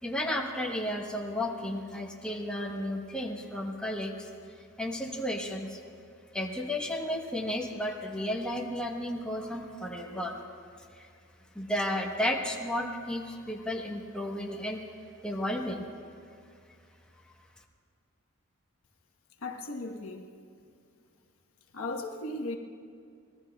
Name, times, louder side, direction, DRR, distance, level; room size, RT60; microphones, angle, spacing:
voice 1, 0.0-5.8 6.3-10.4 10.9-11.1 11.5-14.8 15.2-15.8, left 1 dB, 5° left, 1.1 m, -33 dB
voice 2, 19.4-20.3 21.7-22.6, left 2 dB, 70° left, 1.2 m, -36 dB
25.0 x 19.0 x 2.3 m
head